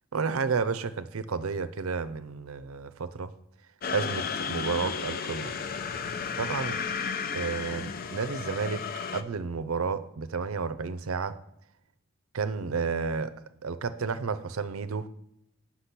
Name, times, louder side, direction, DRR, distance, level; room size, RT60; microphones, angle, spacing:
voice 1, 0.1-3.3 3.9-5.5 6.4-6.8 7.3-8.8 9.1-11.4 12.3-13.3 13.6-15.1, right 5 dB, 75° right, 12 dB, 0.6 m, -31 dB
sound 1, 3.8-9.2, left 6 dB, 45° left, 0.5 m, -33 dB
8.2 x 6.0 x 5.9 m, 0.77 s
head